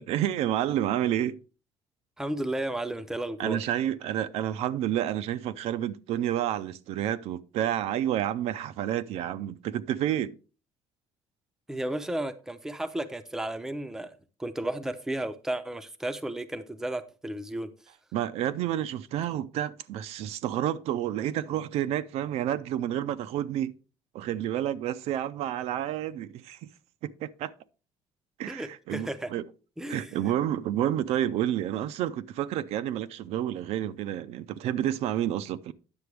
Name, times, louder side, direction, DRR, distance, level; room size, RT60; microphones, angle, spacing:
voice 1, 0.0-1.4 3.4-10.4 18.1-23.7 24.1-26.7 27.0-27.5 28.4-29.4 29.9-35.7, right 11 dB, 65° right, 0.5 m, -29 dB
voice 2, 2.2-3.6 11.7-14.1 14.4-17.7 28.5-29.3 29.8-30.1, right 1 dB, 5° right, 0.6 m, -33 dB
9.6 x 6.9 x 3.3 m
cardioid pair, 160°, 11 cm